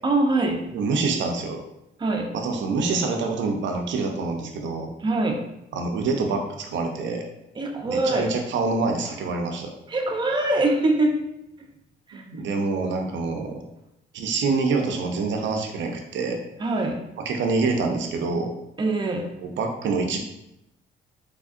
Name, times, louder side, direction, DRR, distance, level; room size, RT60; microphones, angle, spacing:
voice 1, 0.0-0.6 2.0-2.3 5.0-5.4 7.6-8.3 9.9-11.2 12.1-12.2 16.6-17.0 18.8-19.3, right 2 dB, 25° right, 2 dB, 0.6 m, -23 dB
voice 2, 0.7-1.6 2.3-4.9 5.7-7.2 7.8-9.7 12.1-13.6 14.1-16.4 17.2-18.5 19.4-20.2, right 4 dB, 70° right, 3 dB, 0.5 m, -26 dB
3.5 x 3.4 x 2.4 m, 0.86 s
cardioid pair, 90°, 20 cm